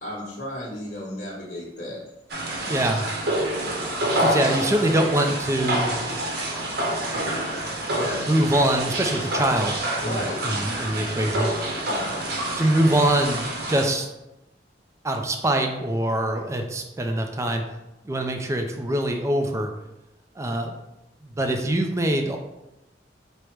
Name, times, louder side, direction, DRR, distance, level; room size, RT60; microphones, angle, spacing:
voice 1, 0.0-2.0 7.9-8.2 10.0-10.5 11.8-12.2, equal, 55° left, -9 dB, 1.1 m, -33 dB
sound 1, 2.3-13.9, right 1 dB, 65° right, 0.8 m, -27 dB
voice 2, 2.6-3.1 3.8-3.9 4.2-6.0 8.0-11.5 12.6-13.4 13.7-14.1 15.0-17.6 18.0-19.7 20.4-20.8 21.2-22.4, right 1 dB, 15° right, 4 dB, 0.3 m, -24 dB
4.9 x 2.1 x 4.4 m, 0.93 s
head